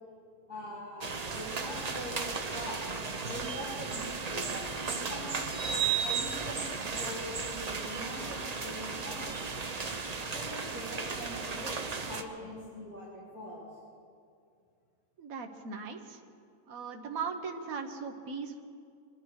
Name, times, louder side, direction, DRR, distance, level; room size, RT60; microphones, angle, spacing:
voice 1, 0.5-5.6 6.0-9.5 10.0-13.6, equal, 70° left, -11 dB, 4.5 m, -43 dB
sound 1, 1.0-12.2, right 5 dB, 35° right, 0.7 m, -35 dB
voice 2, 15.2-16.2 16.7-18.6, right 5 dB, 65° right, 3 dB, 1.6 m, -38 dB
24.5 x 12.0 x 4.8 m, 2.3 s
omnidirectional pair, 1.6 m